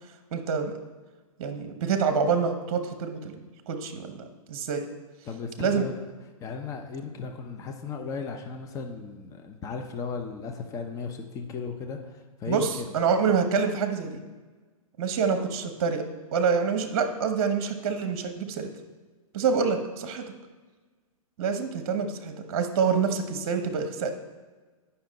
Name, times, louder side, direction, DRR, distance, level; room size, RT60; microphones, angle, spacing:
voice 1, 0.3-0.7 1.4-4.8 5.6-5.9 12.4-14.2 15.0-16.0 16.3-18.7 19.3-20.3 21.4-24.2, right 6 dB, 45° right, 7 dB, 1.0 m, -27 dB
voice 2, 5.3-6.0 6.4-12.9, left 5 dB, 15° left, 4 dB, 0.7 m, -36 dB
9.3 x 5.6 x 4.0 m, 1.3 s
hypercardioid pair, 125°, 18 cm